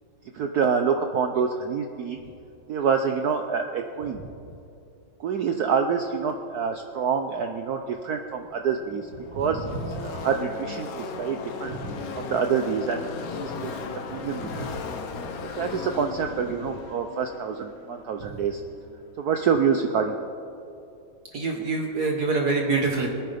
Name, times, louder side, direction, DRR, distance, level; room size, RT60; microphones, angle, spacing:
voice 1, 0.3-2.2 2.7-4.2 5.2-9.1 9.3-11.7 12.2-13.0 13.4-14.6 15.6-18.6 19.2-20.2, right 6 dB, 70° right, 5 dB, 1.0 m, -26 dB
Car passing by / Race car auto racing, 8.0-8.1 8.3-18.8, left 4 dB, 55° left, 1.2 m, -37 dB
voice 2, 21.3-23.1, right 3 dB, 55° right, 1 dB, 1.7 m, -26 dB
24.5 x 9.5 x 3.5 m, 2.7 s
omnidirectional pair, 2.2 m